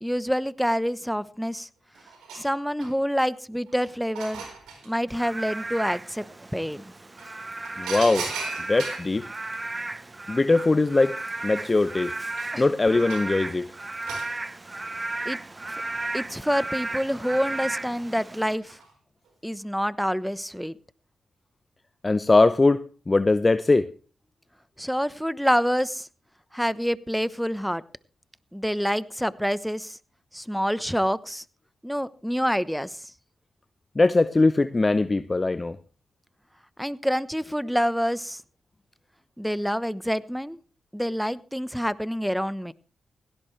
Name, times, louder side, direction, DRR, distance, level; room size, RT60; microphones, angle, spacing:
voice 1, 0.0-1.7 2.3-4.4 4.8-6.2 6.5-6.9 12.5-12.6 15.2-15.4 16.1-18.8 19.4-20.7 24.8-26.1 26.5-27.8 28.5-30.0 30.3-31.4 31.8-33.1 36.8-38.4 39.4-40.6 40.9-42.7, equal, ahead, 17 dB, 1.0 m, -27 dB
sound 1, 1.5-1.6 1.9-3.2 3.7-4.9 6.6-6.7 7.2-9.1 10.7-10.8 11.1-13.4 14.1-14.3 15.9-16.6 17.1-17.7 18.6-18.9 19.3-19.4, right 5 dB, 90° right, 4.4 m, -38 dB
Frog / Rain, 5.1-18.6, right 2 dB, 30° right, 0.9 m, -35 dB
voice 2, 7.8-8.3 8.7-9.3 10.3-11.1 11.4-12.1 12.6-13.7 22.0-23.9 34.0-35.8, left 3 dB, 35° left, 13 dB, 0.7 m, -21 dB
17.5 x 16.5 x 3.3 m, 0.37 s
supercardioid pair, 45°, 0 cm